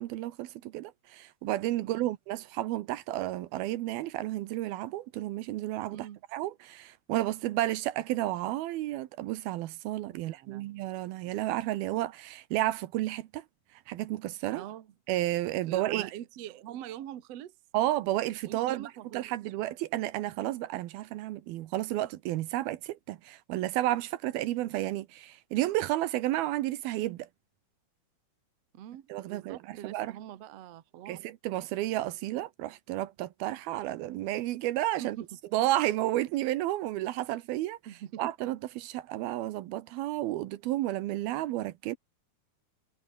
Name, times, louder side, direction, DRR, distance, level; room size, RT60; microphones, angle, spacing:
voice 1, 0.0-6.1 6.3-13.4 13.9-14.6 15.1-16.1 17.7-27.3 29.1-30.1 31.1-35.2 35.5-37.8 38.2-42.0, right 15 dB, 75° right, 2.7 m, -32 dB
voice 2, 1.8-2.1 5.9-6.2 10.1-10.9 11.2-11.3 14.5-14.9 15.6-17.5 18.4-19.3 28.7-31.2 35.0-35.3 37.9-38.3, right 11 dB, 60° right, 1.8 m, -43 dB
omnidirectional pair, 4.5 m